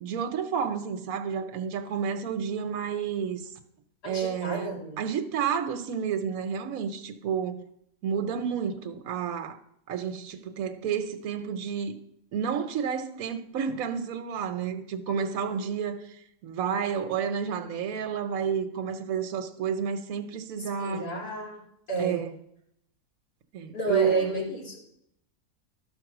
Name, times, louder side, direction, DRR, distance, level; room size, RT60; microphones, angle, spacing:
voice 1, 0.0-3.4 4.0-7.6 8.0-9.6 9.9-11.9 12.3-21.0 22.0-22.3 23.5-24.3, right 7 dB, 65° right, 1.2 m, -30 dB
voice 2, 4.0-5.0 15.2-15.6 20.5-21.6 21.9-22.2 23.7-24.8, right 2 dB, 85° left, 3.1 m, -32 dB
12.5 x 4.2 x 6.0 m
omnidirectional pair, 1.7 m